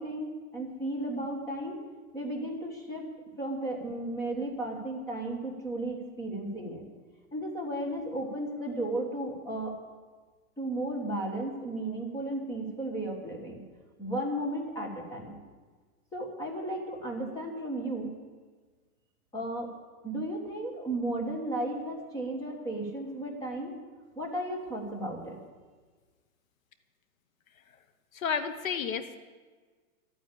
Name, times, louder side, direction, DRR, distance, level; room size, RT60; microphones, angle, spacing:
voice 1, 0.0-1.8 2.1-3.0 3.4-6.8 7.3-9.7 10.6-13.6 14.0-15.4 16.1-18.1 19.3-19.7 20.0-23.7 24.1-25.4, right 1 dB, 10° left, 0 dB, 1.4 m, -34 dB
voice 2, 28.1-29.2, left 6 dB, 65° left, 10 dB, 1.1 m, -31 dB
13.0 x 9.4 x 8.5 m, 1.4 s
supercardioid pair, 170°, 44 cm